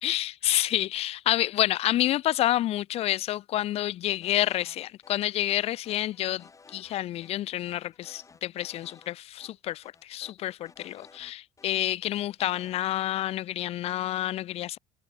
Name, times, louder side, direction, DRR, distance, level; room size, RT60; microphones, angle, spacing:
voice 1, 0.0-14.8, left 14 dB, 50° left, 0.4 m, -29 dB
sound 1, 4.2-4.8 5.0-5.1 5.5-7.0 7.2-7.3 7.7-9.1 9.4-9.5 9.8-11.7 12.0-12.8, left 4 dB, 25° left, 6.3 m, -55 dB
cardioid pair, 105°, 13 cm